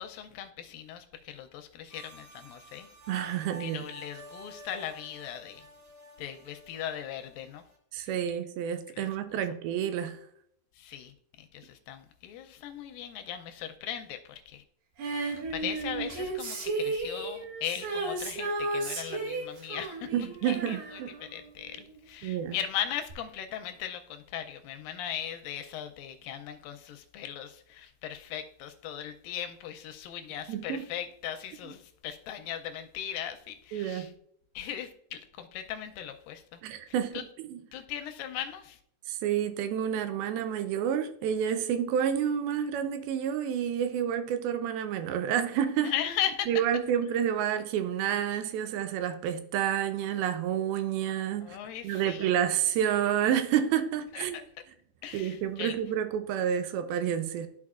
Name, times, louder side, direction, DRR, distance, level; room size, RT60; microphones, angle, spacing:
voice 1, 0.0-2.9 3.6-5.7 6.2-7.6 8.0-8.1 8.9-9.1 10.8-14.6 15.5-20.1 20.4-34.1 34.6-36.6 36.9-37.2 37.7-38.8 45.8-46.5 51.4-52.3 54.1-54.4 55.0-55.8, left 10 dB, 80° left, 2.2 m, -38 dB
sound 1, 1.9-7.8, equal, 55° right, 1.9 m, -50 dB
voice 2, 3.1-3.9 7.9-10.2 20.1-21.1 22.2-22.6 30.5-30.8 31.6-31.7 33.7-34.1 36.6-37.6 39.1-45.9 46.5-51.6 51.8-54.4 55.1-57.5, right 9 dB, 90° right, 2.5 m, -29 dB
Female singing, 15.0-22.0 23.1-23.2, right 3 dB, 70° right, 2.9 m, -34 dB
13.0 x 4.5 x 2.4 m
omnidirectional pair, 4.2 m